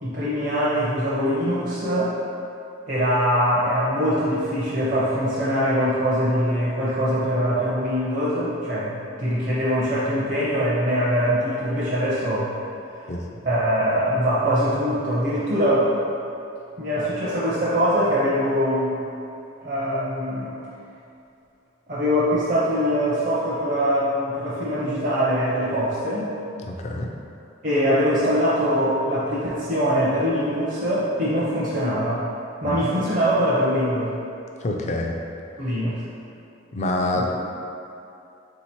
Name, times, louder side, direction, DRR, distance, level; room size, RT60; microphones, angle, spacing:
voice 1, 0.0-2.1 2.9-12.5 13.4-15.9 16.8-19.0 19.6-20.5 21.9-26.3 27.6-32.3 32.6-34.1 35.6-36.0 37.1-37.3, equal, 40° right, -9 dB, 0.6 m, -23 dB
voice 2, 26.6-27.1 32.6-32.8 34.6-35.2 36.7-37.3, left 1 dB, 35° left, 1 dB, 0.3 m, -26 dB
3.8 x 2.8 x 4.4 m, 2.7 s
head